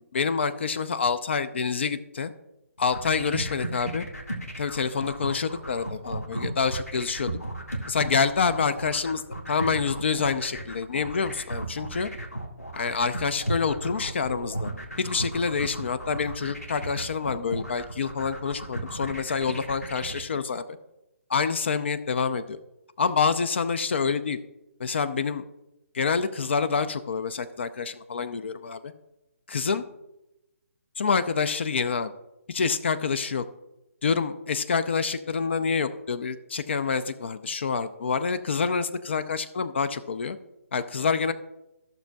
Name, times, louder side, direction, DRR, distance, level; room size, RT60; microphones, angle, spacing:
voice 1, 0.1-2.3 2.8-4.1 4.6-7.3 7.9-12.1 12.7-14.7 15.0-20.8 21.3-22.6 23.0-24.4 24.8-25.4 25.9-28.9 29.5-29.8 31.0-32.1 32.5-33.4 34.0-40.4 40.7-41.3, left 5 dB, 50° left, 12 dB, 0.5 m, -27 dB
sound 1, 2.8-20.2, right 1 dB, 85° left, 1.8 m, -35 dB
14.5 x 6.5 x 2.3 m, 0.93 s
figure-of-eight pair, 140°, 8 cm